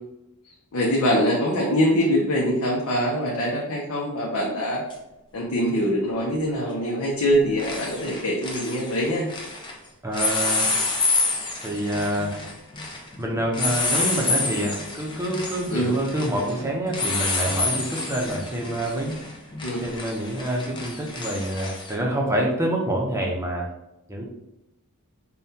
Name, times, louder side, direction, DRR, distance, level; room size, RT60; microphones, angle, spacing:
voice 1, 0.7-4.8 5.3-9.3 15.7-15.9 19.6-19.8, equal, 65° left, -3 dB, 0.7 m, -23 dB
sound 1, 4.9-5.0 6.7-7.0 7.3-9.7 10.1-21.9, left 3 dB, 20° left, 0.6 m, -28 dB
voice 2, 10.0-10.7 11.6-12.5 13.2-19.2 19.8-23.7 24.1-24.2, right 1 dB, 10° right, -2 dB, 0.7 m, -27 dB
5.3 x 2.3 x 2.7 m, 0.91 s
head